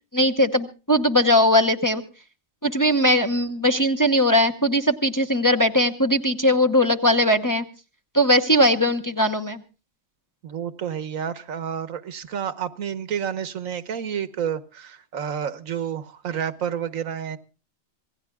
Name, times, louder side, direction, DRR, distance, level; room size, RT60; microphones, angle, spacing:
voice 1, 0.1-2.0 2.6-7.6 8.1-9.6, equal, 20° left, 0.7 m, -19 dB
voice 2, 10.4-17.4, right 8 dB, 85° right, 1.4 m, -30 dB
26.5 x 17.0 x 2.3 m
omnidirectional pair, 1.4 m